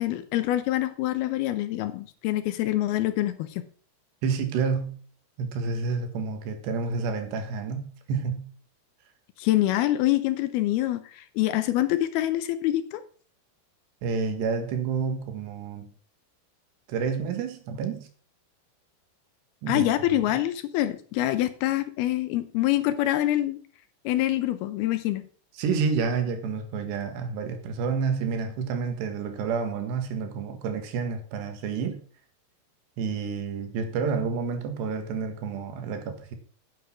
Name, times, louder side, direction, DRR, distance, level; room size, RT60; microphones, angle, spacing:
voice 1, 0.0-3.6 9.4-13.0 19.7-23.6 24.1-25.2, left 14 dB, 75° left, 12 dB, 2.5 m, -25 dB
voice 2, 4.2-5.0 5.4-8.5 14.0-15.9 16.9-18.1 19.6-19.9 20.1-20.2 25.6-32.0 33.0-36.4, right 5 dB, 80° right, 7 dB, 3.8 m, -29 dB
9.9 x 8.1 x 6.2 m, 0.43 s
omnidirectional pair, 4.8 m